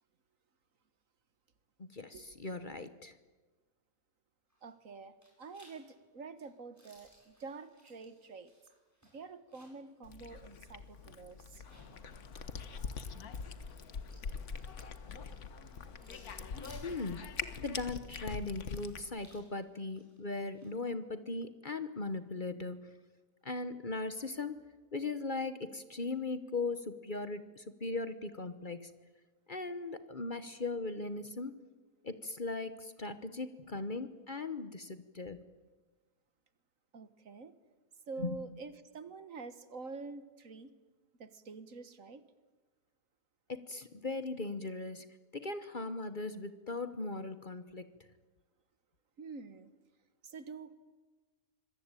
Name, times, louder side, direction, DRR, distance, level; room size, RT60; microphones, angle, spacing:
voice 1, 1.8-3.1 16.8-17.2 17.5-22.8 23.4-28.9 29.5-31.6 32.0-35.4 38.2-38.4 43.5-45.1 45.3-47.9, left 3 dB, 35° left, 11 dB, 1.2 m, -39 dB
sound 1, 4.5-4.9 5.2-9.9 10.3-10.4 11.5-20.7, equal, 10° right, 8.0 m, -63 dB
voice 2, 4.6-8.5 9.1-11.6 36.9-37.5 38.1-40.7 41.2-42.2 49.2-49.7 50.2-50.7, right 4 dB, 60° right, 13 dB, 1.8 m, -47 dB
Cat, 10.0-19.0, left 5 dB, 55° left, 1.5 m, -44 dB
Slam, 11.7-17.8, left 6 dB, 80° left, 1.8 m, -53 dB
26.0 x 22.0 x 9.1 m, 1.3 s
omnidirectional pair, 1.6 m